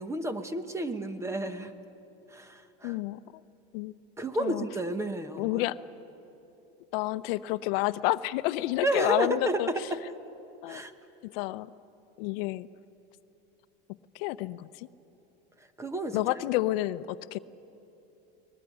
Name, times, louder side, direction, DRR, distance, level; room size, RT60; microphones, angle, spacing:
voice 1, 0.0-1.7 2.3-3.0 4.2-5.7 8.8-10.0 10.7-10.9 15.8-16.3, right 1 dB, 10° right, 10 dB, 1.0 m, -31 dB
voice 2, 2.8-3.2 3.7-3.9 4.4-4.7 5.4-5.8 6.9-9.7 10.6-10.8 11.2-11.7 12.2-12.7 14.1-14.9 16.1-17.4, left 17 dB, 70° left, 15 dB, 0.7 m, -29 dB
22.5 x 20.0 x 9.9 m, 3.0 s
supercardioid pair, 145°, 30 cm